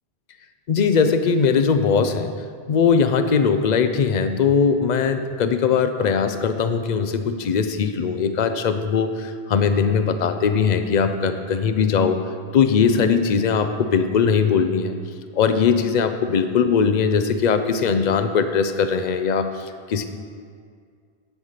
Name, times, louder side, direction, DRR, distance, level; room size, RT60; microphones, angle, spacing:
voice 1, 0.7-2.3 2.7-12.2 12.5-15.0 15.4-20.0, left 6 dB, 50° left, 9 dB, 0.6 m, -20 dB
7.9 x 7.9 x 5.8 m, 2.1 s
omnidirectional pair, 1.1 m